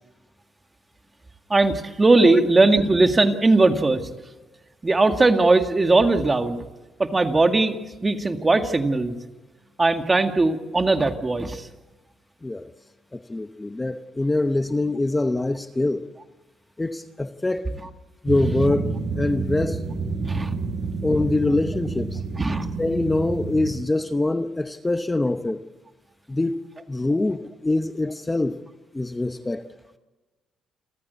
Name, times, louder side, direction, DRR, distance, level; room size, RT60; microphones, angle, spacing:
voice 1, 1.5-4.1 4.8-6.6 7.0-7.8 8.0-9.2 9.8-11.7 20.2-20.6 22.4-22.7, right 2 dB, 25° right, 6 dB, 2.0 m, -19 dB
voice 2, 12.4-12.7 13.1-16.1 16.8-17.8 18.2-19.8 21.0-22.2 22.8-25.6 26.3-26.6 26.9-28.6 28.9-29.7, left 2 dB, 15° left, 9 dB, 0.9 m, -24 dB
sound 1, 18.3-23.8, right 4 dB, 50° right, 6.9 m, -29 dB
29.5 x 14.0 x 8.3 m, 1.2 s
cardioid pair, 90°, 0 cm